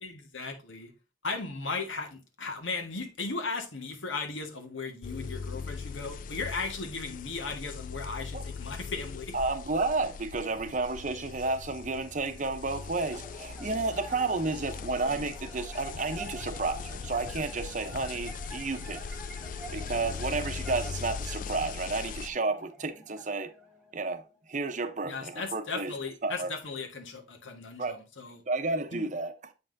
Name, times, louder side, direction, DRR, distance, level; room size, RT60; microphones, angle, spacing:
voice 1, 0.0-0.9 1.2-9.4 25.0-28.4 28.9-29.1, left 4 dB, 85° left, 1.5 m, -36 dB
sound 1, 5.0-22.3, left 5 dB, 45° left, 0.4 m, -40 dB
voice 2, 9.3-19.0 19.7-23.5 23.9-24.2 24.5-25.9 26.2-26.5 27.8-28.0 28.5-29.3, right 3 dB, 40° right, 0.7 m, -31 dB
sound 2, 13.1-24.6, right 2 dB, 5° right, 1.1 m, -49 dB
7.6 x 5.6 x 2.6 m
head